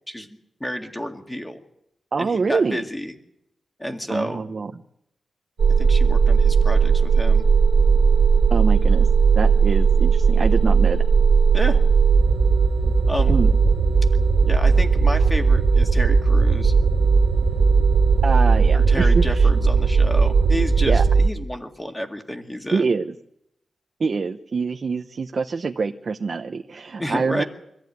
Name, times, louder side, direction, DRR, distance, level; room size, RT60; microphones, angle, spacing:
voice 1, 0.1-1.6 2.2-3.1 3.8-4.4 5.8-7.5 11.5-11.8 13.1-13.4 14.5-16.7 18.7-23.0 27.0-27.4, equal, 10° left, 4 dB, 2.0 m, -30 dB
voice 2, 2.1-2.8 4.1-4.7 8.5-9.1 9.3-11.0 13.3-13.5 18.2-19.5 20.9-21.0 22.7-23.1 24.0-27.4, right 4 dB, 40° right, 6 dB, 0.8 m, -25 dB
sound 1, 5.6-21.3, right 5 dB, 80° right, 1.4 m, -17 dB
24.5 x 14.5 x 9.4 m, 0.79 s
wide cardioid pair, 180°, 0 cm